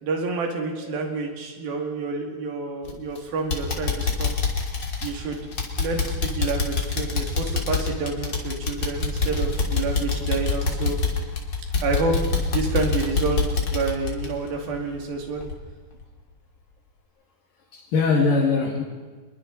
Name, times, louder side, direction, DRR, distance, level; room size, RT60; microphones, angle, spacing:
voice 1, 0.0-4.4 5.0-5.5 5.8-11.0 11.8-15.4, right 3 dB, 75° right, 2 dB, 4.3 m, -28 dB
voice 2, 0.6-1.0 17.7-18.8, left 4 dB, 70° left, -2 dB, 3.8 m, -23 dB
sound 1, 2.8-3.2 3.5-15.1 15.4-15.5 16.0-16.1, left 4 dB, 30° left, 3.2 m, -26 dB
29.0 x 22.0 x 4.1 m, 1.4 s
omnidirectional pair, 4.2 m